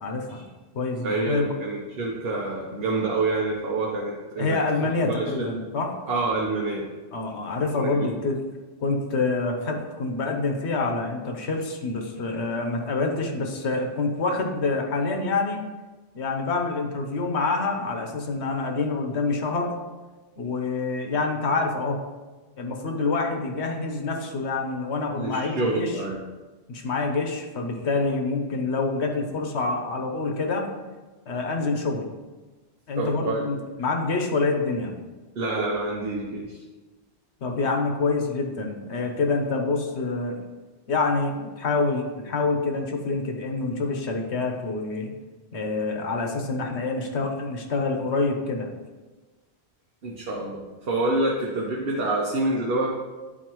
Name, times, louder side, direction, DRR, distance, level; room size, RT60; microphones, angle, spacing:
voice 1, 0.0-0.4 0.7-1.5 4.4-5.9 7.1-8.4 8.8-15.6 16.1-19.7 20.4-22.0 22.6-26.0 26.7-30.7 31.3-32.1 32.9-34.9 37.4-40.4 40.9-45.1 45.5-48.7, left 3 dB, 85° left, 3 dB, 1.2 m, -26 dB
voice 2, 1.0-5.5 6.1-6.9 7.7-8.1 25.1-26.2 32.9-33.4 35.4-36.6 50.0-52.9, right 2 dB, 65° right, -2 dB, 1.0 m, -27 dB
11.0 x 4.2 x 3.0 m, 1.3 s
omnidirectional pair, 1.1 m